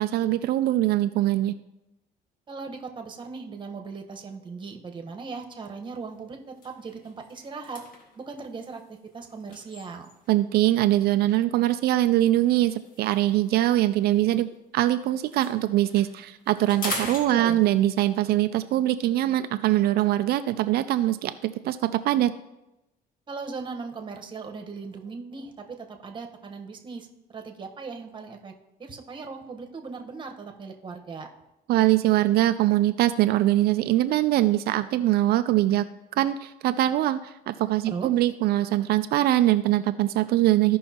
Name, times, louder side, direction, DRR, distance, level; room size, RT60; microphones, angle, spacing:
voice 1, 0.0-1.6 10.3-14.5 14.7-22.3 31.7-35.9 36.2-40.8, right 14 dB, 70° right, 11 dB, 0.4 m, -22 dB
voice 2, 2.5-7.8 8.2-10.1 17.0-17.6 23.3-28.5 28.8-31.3 37.9-38.1, right 4 dB, 30° right, 4 dB, 1.1 m, -38 dB
sound 1, 5.3-5.6 6.0-6.1 6.5-10.4 11.3-14.8 15.1-18.0, left 2 dB, 55° left, 1.8 m, -41 dB
15.0 x 5.5 x 2.9 m, 0.95 s
cardioid pair, 110°, 17 cm